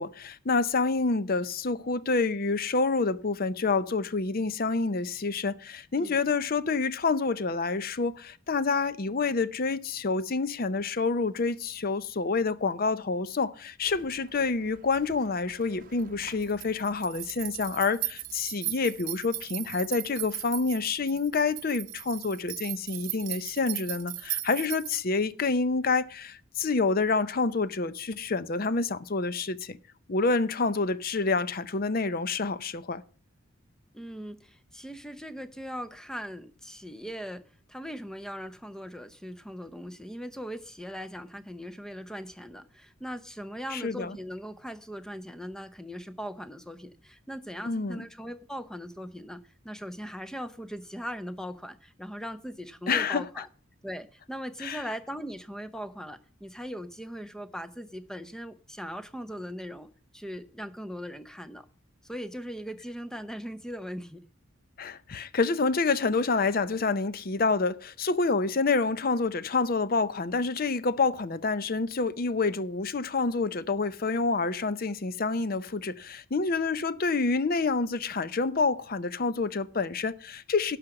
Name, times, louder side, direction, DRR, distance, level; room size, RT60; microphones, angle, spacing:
voice 1, 0.0-29.8 30.1-33.0 43.7-44.2 47.6-48.1 52.9-53.2 54.6-54.8 64.8-80.8, left 4 dB, 45° left, 0.6 m, -28 dB
sound 1, 13.8-25.0, right 14 dB, 40° right, 0.8 m, -38 dB
voice 2, 33.9-53.5 53.8-59.9 60.1-61.7 62.0-64.3, equal, 5° left, 0.6 m, -39 dB
11.5 x 5.0 x 7.7 m
head